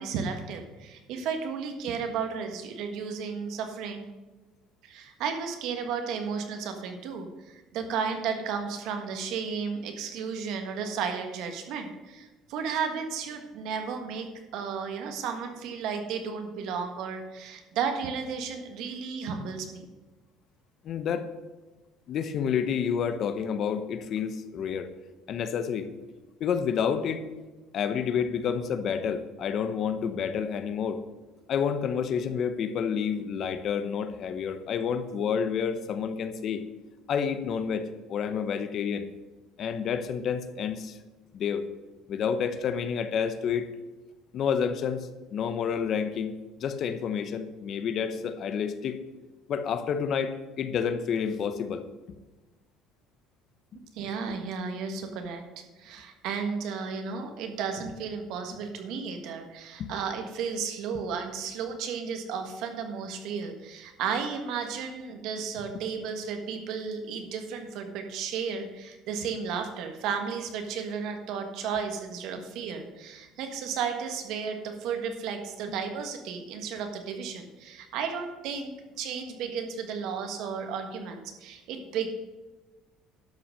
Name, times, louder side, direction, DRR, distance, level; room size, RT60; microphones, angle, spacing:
voice 1, 0.0-4.1 4.8-19.8 53.9-55.4 55.8-82.1, right 6 dB, 65° right, 5 dB, 1.6 m, -33 dB
voice 2, 20.8-21.3 22.1-24.9 25.3-25.9 26.4-27.2 27.7-31.0 31.5-36.6 37.1-39.1 39.6-41.0 41.3-41.7 42.1-43.7 44.3-49.0 49.5-51.9 59.8-59.9, left 7 dB, 45° left, 10 dB, 0.8 m, -29 dB
11.5 x 5.9 x 6.5 m, 1.2 s
cardioid pair, 150°, 0 cm